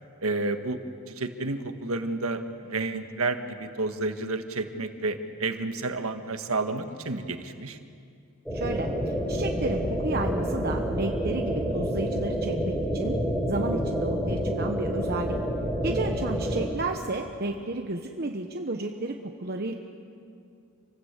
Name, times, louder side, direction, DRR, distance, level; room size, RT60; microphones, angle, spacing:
voice 1, 0.2-0.8 1.1-7.8 15.9-16.2, right 3 dB, 90° right, 7 dB, 1.6 m, -31 dB
sound 1, 8.5-16.7, equal, ahead, 3.9 m, -28 dB
voice 2, 8.5-13.2 13.5-15.4 15.8-19.7, right 2 dB, 45° right, 3 dB, 1.1 m, -32 dB
27.5 x 20.0 x 8.2 m, 2.4 s
head